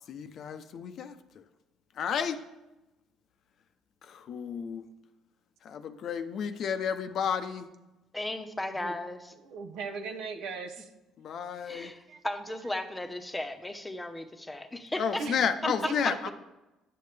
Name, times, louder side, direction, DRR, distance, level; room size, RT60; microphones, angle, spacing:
voice 1, 0.1-1.1 2.0-2.4 4.1-4.8 5.6-7.7 11.2-11.9 15.0-16.3, left 7 dB, 60° left, 10 dB, 0.6 m, -32 dB
voice 2, 8.1-9.3 11.6-15.3 15.6-16.3, left 1 dB, 15° left, 8 dB, 0.9 m, -35 dB
voice 3, 9.4-10.9 12.1-12.2 15.2-16.3, right 4 dB, 75° right, 5 dB, 0.8 m, -38 dB
9.4 x 6.6 x 3.3 m, 1.0 s
supercardioid pair, 70°, 0 cm